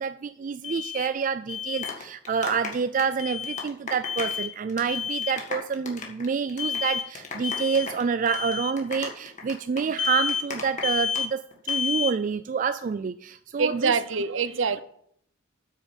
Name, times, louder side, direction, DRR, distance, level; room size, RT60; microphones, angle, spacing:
voice 1, 0.0-13.9, right 6 dB, 40° right, 11 dB, 0.3 m, -28 dB
Alarm, 0.6-1.1 1.5-1.9 3.2-3.6 4.0-4.5 4.9-5.4 6.6-7.1 7.4-7.9 8.3-8.7 10.0-10.5 10.8-11.3 11.7-12.1, left 7 dB, 60° left, 0.8 m, -30 dB
sound 1, 1.5-4.4 4.7-5.0 5.2-11.2 11.5-11.8, left 4 dB, 35° left, 1.6 m, -36 dB
voice 2, 13.6-14.8, right 5 dB, 70° right, 14 dB, 0.7 m, -25 dB
9.0 x 6.3 x 7.2 m, 0.68 s
head